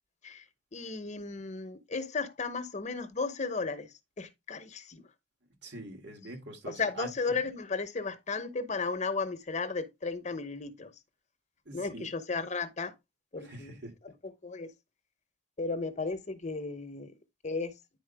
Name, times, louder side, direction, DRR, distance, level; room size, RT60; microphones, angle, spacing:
voice 1, 0.7-5.0 6.7-10.9 11.7-12.9 13.3-13.8 14.0-14.1 14.4-14.7 15.6-17.1 17.4-17.8, left 4 dB, 40° left, 0.9 m, -34 dB
voice 2, 5.6-7.1 11.6-12.1 13.4-13.9, right 2 dB, 70° right, 3.0 m, -44 dB
10.0 x 4.5 x 3.4 m
head